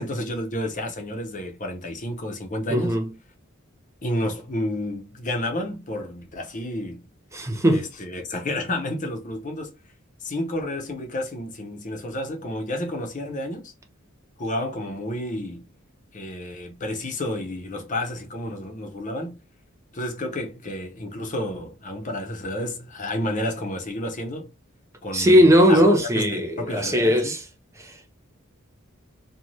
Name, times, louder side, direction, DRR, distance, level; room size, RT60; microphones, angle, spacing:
voice 1, 0.0-3.0 4.0-7.1 7.7-9.7 10.2-13.7 14.4-15.7 16.1-19.3 19.9-24.5 25.0-25.9 26.2-27.3, left 1 dB, 40° left, 0.7 m, -30 dB
voice 2, 2.7-3.1 7.3-7.8 25.1-27.5 27.8-28.2, equal, 15° right, 0.5 m, -19 dB
3.1 x 2.3 x 2.6 m
head